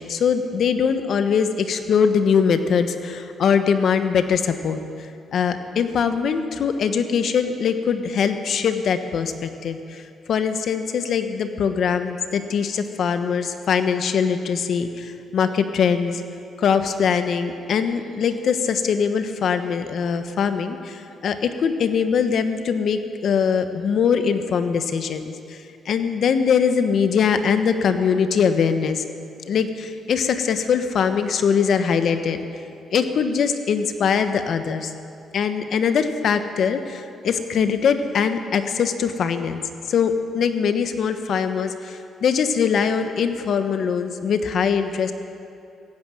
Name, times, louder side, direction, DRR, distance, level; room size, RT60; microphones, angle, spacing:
voice 1, 0.0-4.8 5.3-10.0 10.3-16.2 16.6-29.0 29.5-32.5 32.9-34.9 35.3-39.6 39.9-45.1, left 6 dB, 65° left, 9 dB, 1.1 m, -22 dB
15.5 x 9.7 x 9.1 m, 2.5 s
cardioid pair, 90°, 0 cm